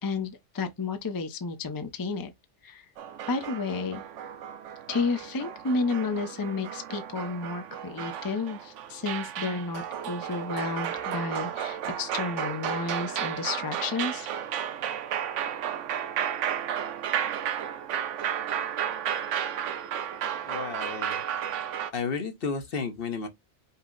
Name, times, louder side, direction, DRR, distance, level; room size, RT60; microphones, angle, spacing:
voice 1, 0.0-2.3 2.6-2.9 3.3-4.0 4.9-14.3, left 4 dB, 30° left, 0.4 m, -31 dB
sound 1, 3.0-21.9, right 9 dB, 85° right, 0.9 m, -33 dB
voice 2, 20.5-21.2 21.9-23.3, left 5 dB, 55° left, 1.0 m, -32 dB
5.4 x 2.0 x 3.7 m
omnidirectional pair, 1.2 m